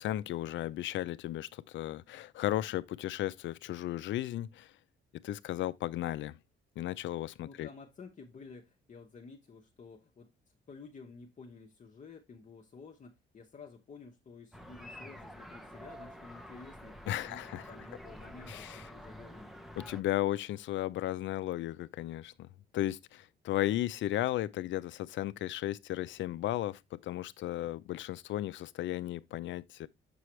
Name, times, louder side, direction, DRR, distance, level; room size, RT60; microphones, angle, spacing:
voice 1, 0.0-4.7 5.1-6.4 6.8-7.7 17.1-17.6 18.5-18.8 19.8-22.5 22.7-29.9, left 14 dB, 70° left, 0.4 m, -35 dB
voice 2, 7.4-10.3 10.7-19.6, left 4 dB, 40° left, 0.9 m, -52 dB
sound 1, 14.5-20.0, equal, ahead, 0.8 m, -48 dB
6.9 x 4.8 x 3.1 m
cardioid pair, 90°, 20 cm